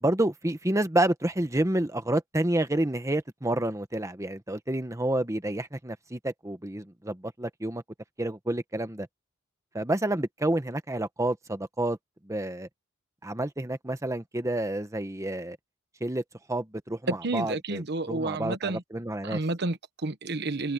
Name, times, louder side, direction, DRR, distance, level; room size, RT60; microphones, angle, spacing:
voice 1, 0.0-7.8 8.2-9.1 9.7-12.0 12.3-12.7 13.2-15.6 16.0-16.2 16.5-19.4, right 1 dB, 15° right, 1.2 m, -29 dB
voice 2, 17.1-18.8 19.2-20.7, right 2 dB, 55° right, 1.2 m, -30 dB
head